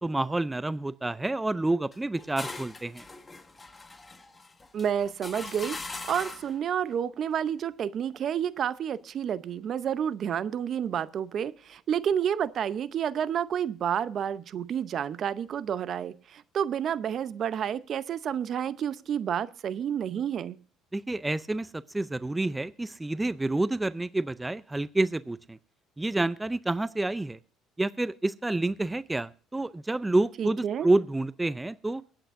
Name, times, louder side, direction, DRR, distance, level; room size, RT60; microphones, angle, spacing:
voice 1, 0.0-3.0 20.9-25.6 26.0-27.4 27.8-32.0, right 2 dB, 15° right, 16 dB, 0.4 m, -28 dB
sound 1, 1.9-6.6, left 3 dB, 20° left, 1.5 m, -41 dB
voice 2, 4.7-20.6 30.4-30.9, right 8 dB, 55° right, 15 dB, 0.7 m, -30 dB
23.5 x 8.9 x 2.6 m, 0.41 s
supercardioid pair, 80°, 0 cm